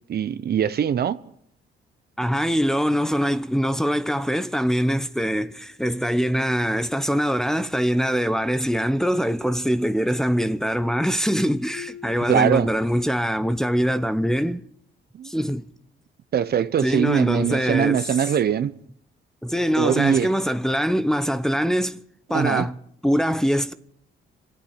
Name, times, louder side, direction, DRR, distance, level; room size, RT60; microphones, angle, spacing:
voice 1, 0.1-1.2 12.3-12.7 15.2-15.3 16.3-18.7 19.8-20.3 22.3-22.7, right 8 dB, 55° right, 0.8 m, -22 dB
voice 2, 2.2-14.6 15.2-15.6 16.8-18.0 19.4-22.0 22.3-22.8 23.0-23.7, equal, ahead, 0.8 m, -23 dB
Marimba xylophone, 11.7-13.5, left 9 dB, 70° left, 1.5 m, -44 dB
25.5 x 9.0 x 5.8 m
cardioid pair, 90°, 20 cm